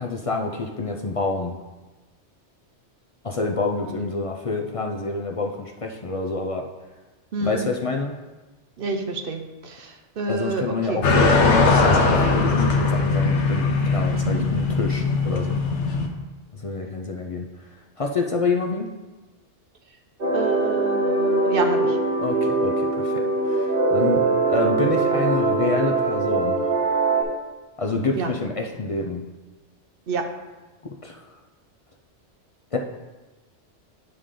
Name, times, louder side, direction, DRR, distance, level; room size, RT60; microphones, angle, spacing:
voice 1, 0.0-1.6 3.2-6.7 7.4-8.1 10.3-12.0 12.3-15.5 16.5-17.5 18.0-18.9 22.2-26.7 27.8-29.2 31.0-31.2 32.7-32.8, left 3 dB, 45° left, 2 dB, 0.4 m, -27 dB
voice 2, 7.3-7.7 8.8-11.0 14.2-14.4 20.3-22.0 28.1-28.3 30.1-30.3, right 3 dB, 55° right, 5 dB, 0.9 m, -28 dB
sound 1, 11.0-16.1, left 3 dB, 70° left, 1.1 m, -20 dB
sound 2, 20.2-27.2, right 3 dB, 70° right, 1.7 m, -22 dB
9.4 x 5.0 x 3.7 m, 1.2 s
omnidirectional pair, 1.2 m